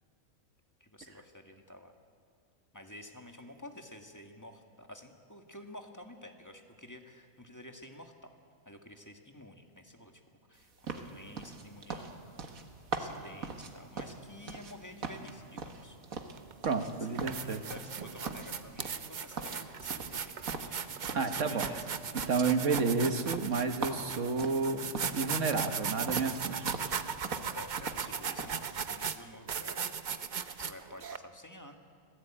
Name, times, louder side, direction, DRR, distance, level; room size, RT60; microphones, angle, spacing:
voice 1, 0.8-1.9 2.7-8.3 8.7-10.2 10.5-12.2 13.0-16.0 16.8-21.9 27.3-30.2 30.6-31.8, left 1 dB, 15° left, 4 dB, 1.7 m, -51 dB
sound 1, 10.9-14.8 15.0-16.9 17.2-18.0 18.3-19.1 19.4-21.4 21.6-25.3 25.5-25.8 26.1-27.0 27.2-28.1 28.4-28.6, right 4 dB, 75° right, 2.0 m, -40 dB
sound 2, 16.4-16.5 17.0-31.2, right 7 dB, 45° right, 0.7 m, -37 dB
voice 2, 16.6-17.6 21.1-21.7 22.2-24.9 25.1-26.8, right 4 dB, 60° right, 7 dB, 1.7 m, -31 dB
26.0 x 17.0 x 8.9 m, 2.3 s
omnidirectional pair, 1.5 m